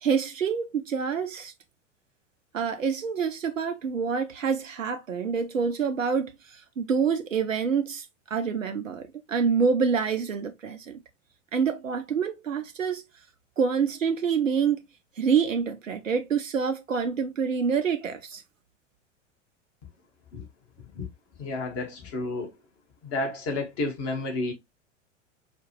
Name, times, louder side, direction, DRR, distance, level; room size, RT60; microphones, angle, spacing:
voice 1, 0.0-1.5 2.5-8.1 8.3-10.9 11.5-13.0 13.6-14.8 15.2-18.4, right 6 dB, 85° right, 0.6 m, -27 dB
voice 2, 21.4-22.5 23.0-24.5, left 2 dB, 35° left, 1.6 m, -31 dB
4.9 x 2.4 x 3.0 m
figure-of-eight pair, 90°, 38 cm